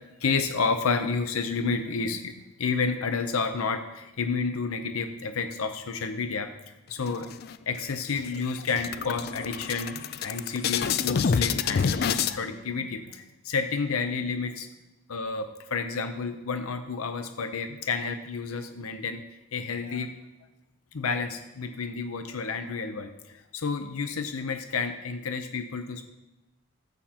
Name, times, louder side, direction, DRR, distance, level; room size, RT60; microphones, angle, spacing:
voice 1, 0.2-7.3 7.7-14.7 15.1-19.2 19.5-20.1 20.9-26.1, left 4 dB, 85° left, 7 dB, 0.6 m, -30 dB
sound 1, 7.0-7.8 8.2-8.3 8.6-12.4, left 6 dB, 45° left, 0.4 m, -27 dB
14.0 x 8.1 x 2.9 m, 1.0 s
head